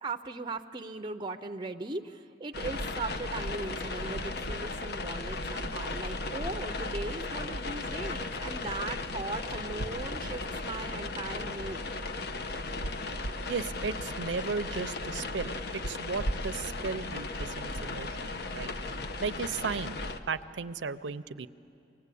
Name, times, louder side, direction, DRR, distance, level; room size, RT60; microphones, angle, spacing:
voice 1, 0.0-11.8, right 3 dB, 25° right, 7 dB, 0.5 m, -38 dB
sound 1, 2.5-20.2, left 2 dB, 60° left, 0.9 m, -36 dB
voice 2, 13.5-15.5 15.9-18.1 18.3-18.7 19.2-20.0 20.3-21.5, right 5 dB, 70° right, 13 dB, 0.6 m, -35 dB
24.5 x 18.5 x 8.4 m, 2.7 s
head